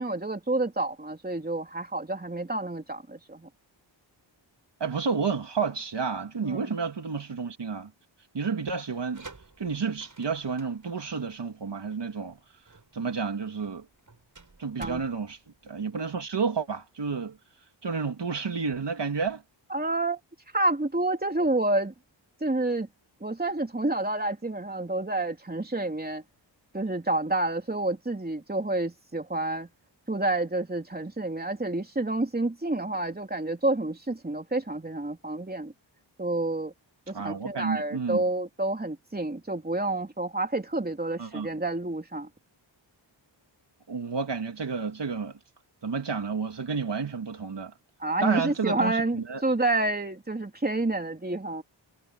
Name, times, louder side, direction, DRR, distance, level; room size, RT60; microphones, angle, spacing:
voice 1, 0.0-3.5 6.4-6.7 14.8-15.0 19.7-20.2 20.5-21.9 22.4-22.9 23.2-26.2 26.7-29.7 30.1-35.7 36.2-36.7 37.1-42.3 48.0-51.6, right 2 dB, 20° right, 3.4 m, -29 dB
voice 2, 4.8-7.9 8.3-9.3 9.6-12.4 12.9-13.8 14.6-17.4 17.8-19.4 37.1-38.2 41.2-41.5 43.9-45.4 45.8-47.7 48.2-49.4, right 5 dB, 60° right, 2.6 m, -30 dB
sound 1, 9.1-16.5, right 3 dB, 40° right, 7.6 m, -51 dB
wide cardioid pair, 115°, 47 cm